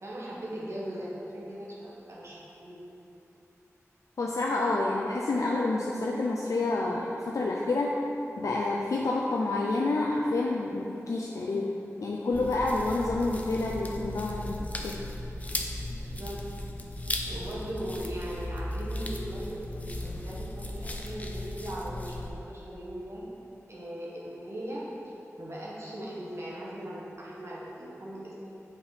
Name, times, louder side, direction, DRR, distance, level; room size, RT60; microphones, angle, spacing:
voice 1, 0.0-2.8 16.0-16.4 17.3-23.2 23.7-24.9 25.4-28.5, right 1 dB, 55° right, -6 dB, 1.4 m, -39 dB
voice 2, 4.2-8.0 8.4-15.0, left 2 dB, 80° left, -2 dB, 0.4 m, -29 dB
sound 1, 12.3-22.3, left 1 dB, 25° left, 0.6 m, -36 dB
5.9 x 4.2 x 5.0 m, 3.0 s
wide cardioid pair, 85°, 5 cm